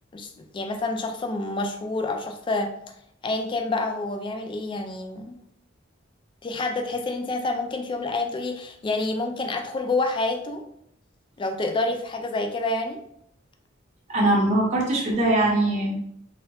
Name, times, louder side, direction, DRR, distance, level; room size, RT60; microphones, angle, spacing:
voice 1, 0.1-2.7 3.2-5.4 6.4-10.6 11.4-13.0, left 2 dB, 25° left, 5 dB, 0.3 m, -28 dB
voice 2, 14.1-16.0, right 1 dB, 35° right, -3 dB, 0.7 m, -21 dB
3.1 x 2.9 x 2.3 m, 0.73 s
head